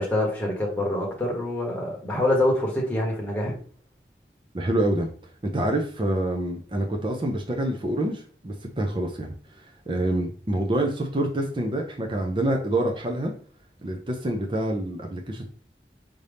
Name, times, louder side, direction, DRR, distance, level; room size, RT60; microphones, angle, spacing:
voice 1, 0.0-3.5, left 1 dB, 10° left, 1.1 m, -25 dB
voice 2, 4.5-5.1 5.4-9.3 9.9-13.3 13.8-15.4, right 1 dB, 30° right, 0.6 m, -26 dB
5.1 x 2.8 x 3.4 m
head